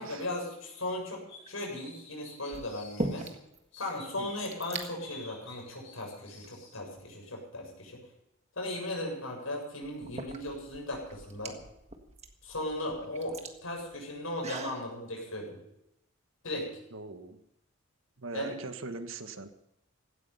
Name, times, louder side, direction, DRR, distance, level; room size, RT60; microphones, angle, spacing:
voice 1, 0.0-3.3 3.8-8.0 8.6-11.6 12.4-15.6 16.4-16.7 18.3-18.6, left 1 dB, 75° left, 1 dB, 7.4 m, -37 dB
sound 1, 1.3-3.3 3.7-6.7, left 4 dB, 55° left, 7.3 m, -50 dB
sound 2, 1.3-1.7 2.5-3.6 3.9-4.0 4.2-4.9 5.7-5.8 6.4-7.3 9.0-9.1 9.8-14.8, right 2 dB, 30° right, 1.6 m, -40 dB
voice 2, 16.9-17.4 18.2-19.5, right 3 dB, 70° right, 9 dB, 1.4 m, -40 dB
17.0 x 13.5 x 5.6 m, 0.84 s
head